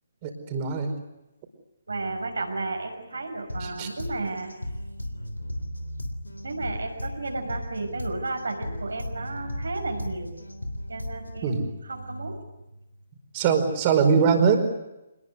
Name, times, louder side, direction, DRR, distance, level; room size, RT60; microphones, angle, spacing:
voice 1, 0.2-0.9 3.6-3.9 11.4-11.7 13.3-14.6, right 6 dB, 30° right, 6 dB, 4.9 m, -22 dB
voice 2, 1.9-4.5 6.4-10.4 10.9-12.4, right 3 dB, 70° right, 4 dB, 6.0 m, -33 dB
sound 1, 3.5-11.5, left 1 dB, 85° left, 3.4 m, -36 dB
26.5 x 20.5 x 9.7 m, 0.97 s
figure-of-eight pair, 135°, 0 cm